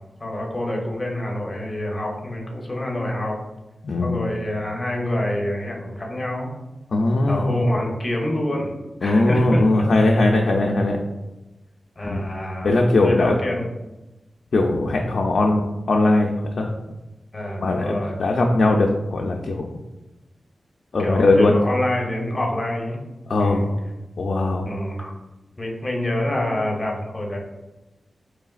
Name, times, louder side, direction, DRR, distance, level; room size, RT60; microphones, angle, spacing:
voice 1, 0.2-3.4 4.0-6.5 7.3-8.7 9.0-10.3 12.0-13.7 17.3-18.1 21.0-23.0 23.4-23.6 24.6-25.1 25.6-27.4, left 1 dB, 25° left, 0 dB, 0.8 m, -27 dB
voice 2, 3.8-4.2 6.9-7.6 9.0-11.0 12.0-12.3 12.6-13.3 14.5-16.3 16.6-16.7 17.6-19.7 20.9-21.6 23.3-23.7 24.2-24.7, left 2 dB, 65° left, 0 dB, 0.4 m, -19 dB
4.9 x 3.1 x 2.3 m, 1.0 s
wide cardioid pair, 120°, 0 cm